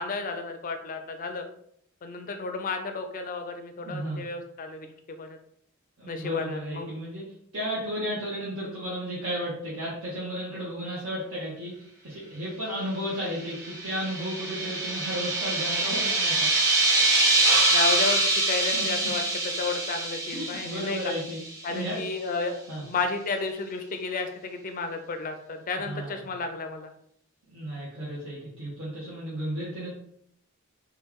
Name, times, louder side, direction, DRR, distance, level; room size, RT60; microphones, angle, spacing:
voice 1, 0.0-1.5 2.0-5.4 6.1-6.9 17.7-21.1 21.6-26.9, left 3 dB, 40° left, 6 dB, 0.4 m, -32 dB
voice 2, 3.8-4.2 6.0-7.3 7.5-16.7 18.7-19.1 20.3-21.4 21.7-22.0 22.7-22.8 25.7-26.2 27.5-29.9, equal, 65° right, -7 dB, 0.9 m, -33 dB
sound 1, 13.4-21.7, right 2 dB, 15° right, 0.6 m, -25 dB
3.1 x 2.3 x 3.5 m, 0.68 s
head